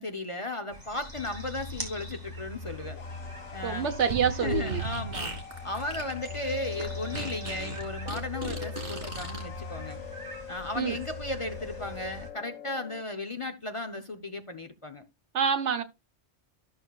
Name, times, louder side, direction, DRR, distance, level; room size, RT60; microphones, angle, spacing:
voice 1, 0.0-3.0 3.5-3.9 4.3-5.3 5.6-10.0 10.5-15.0, left 2 dB, 35° left, 0.6 m, -35 dB
sound 1, 0.7-12.3, left 1 dB, 15° right, 2.3 m, -41 dB
sound 2, 2.6-13.0, left 9 dB, 90° left, 1.4 m, -44 dB
voice 2, 3.6-4.8 10.8-10.9 15.3-15.8, right 7 dB, 80° right, 1.2 m, -27 dB
Fart, 3.9-9.4, right 3 dB, 55° right, 3.0 m, -36 dB
13.0 x 6.5 x 2.3 m
omnidirectional pair, 1.2 m